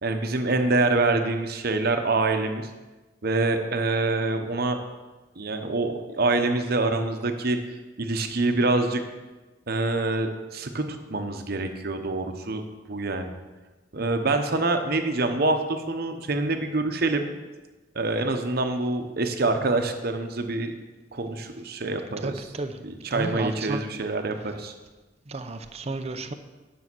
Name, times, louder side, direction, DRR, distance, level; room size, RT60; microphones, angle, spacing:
voice 1, 0.0-2.7 3.2-4.8 5.4-7.6 8.0-9.0 9.7-13.3 13.9-17.3 17.9-20.7 21.1-22.5 22.8-24.7, right 2 dB, 55° right, 6 dB, 1.0 m, -26 dB
voice 2, 22.2-22.7 23.1-23.8 25.3-26.3, right 2 dB, 35° right, 8 dB, 0.7 m, -32 dB
9.8 x 6.5 x 6.1 m, 1.2 s
head